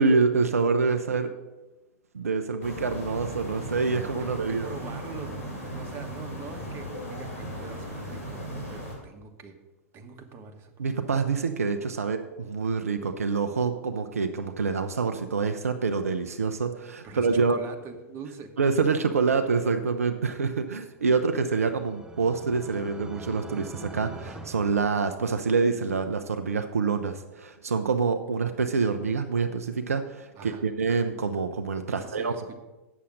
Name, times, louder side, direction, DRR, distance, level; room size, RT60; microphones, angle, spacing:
voice 1, 0.0-1.3 2.1-4.7 10.8-17.6 18.6-32.3, right 4 dB, 85° right, 7 dB, 0.6 m, -26 dB
sound 1, 2.6-9.0, equal, 70° left, 3.7 m, -37 dB
voice 2, 4.2-9.5 9.9-10.9 17.0-18.5 30.4-30.6 31.9-32.6, right 4 dB, 30° right, 5 dB, 1.3 m, -43 dB
sound 2, 21.0-25.6, right 3 dB, 10° right, 0.8 m, -43 dB
8.4 x 7.0 x 6.4 m, 1.1 s
hypercardioid pair, 100°, 8 cm